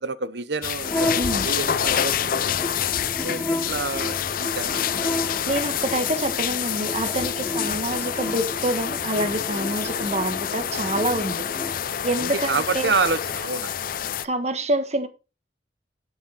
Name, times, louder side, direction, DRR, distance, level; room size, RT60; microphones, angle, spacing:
voice 1, 0.0-2.6 3.2-5.2 5.4-5.6 12.2-14.2, right 4 dB, 70° right, 0.8 m, -29 dB
sound 1, 0.6-14.2, left 9 dB, 50° left, 0.5 m, -27 dB
sound 2, 0.8-11.7, left 1 dB, 10° left, 3.3 m, -33 dB
voice 2, 1.2-1.5 5.5-11.4 12.0-12.9 14.2-15.1, right 1 dB, 40° right, 1.3 m, -26 dB
10.0 x 7.3 x 4.1 m
head